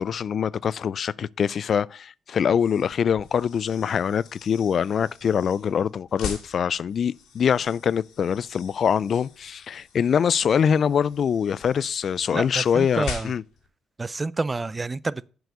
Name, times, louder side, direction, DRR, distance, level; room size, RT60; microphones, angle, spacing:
voice 1, 0.0-13.4, left 7 dB, 55° left, 0.3 m, -24 dB
sound 1, 2.5-13.7, left 6 dB, 85° left, 2.3 m, -42 dB
voice 2, 12.3-13.3 14.0-15.3, right 3 dB, 25° right, 0.4 m, -28 dB
7.7 x 4.9 x 6.7 m
cardioid pair, 90°, 0 cm